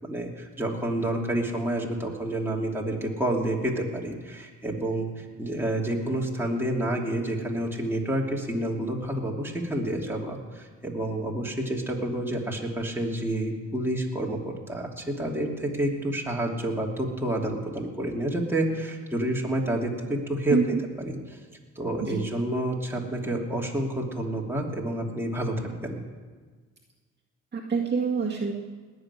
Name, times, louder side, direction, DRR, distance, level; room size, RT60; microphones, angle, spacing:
voice 1, 0.0-21.4 21.7-26.0, right 1 dB, 5° right, -2 dB, 2.8 m, -29 dB
voice 2, 20.5-20.8 22.0-22.3 27.5-28.5, right 5 dB, 35° right, -2 dB, 1.8 m, -26 dB
19.0 x 6.6 x 9.9 m, 1.5 s
cardioid pair, 90°, 30 cm